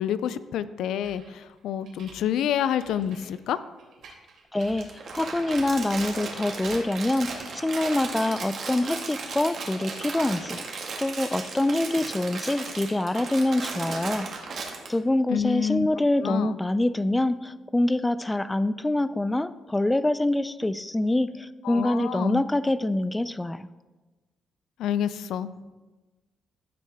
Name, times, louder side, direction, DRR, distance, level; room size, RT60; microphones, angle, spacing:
voice 1, 0.0-3.6 15.3-15.9 16.2-16.6 21.6-22.4 24.8-25.5, left 9 dB, 80° left, 14 dB, 0.4 m, -28 dB
sound 1, 1.0-7.4, right 3 dB, 75° right, 3.2 m, -49 dB
voice 2, 4.5-14.3 14.9-23.7, left 1 dB, 10° left, 15 dB, 0.4 m, -25 dB
Crumpling crinkling, 4.8-14.9, right 4 dB, 60° right, 1.9 m, -35 dB
15.5 x 6.0 x 3.5 m, 1.2 s
cardioid pair, 90°, 0 cm